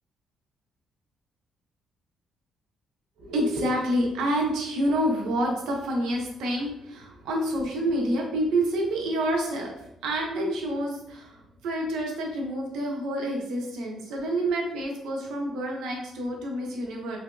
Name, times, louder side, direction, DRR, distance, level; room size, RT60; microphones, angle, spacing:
voice 1, 3.2-17.2, right 1 dB, 85° right, 0 dB, 0.7 m, -28 dB
2.9 x 2.7 x 2.2 m, 0.77 s
cardioid pair, 90°, 0 cm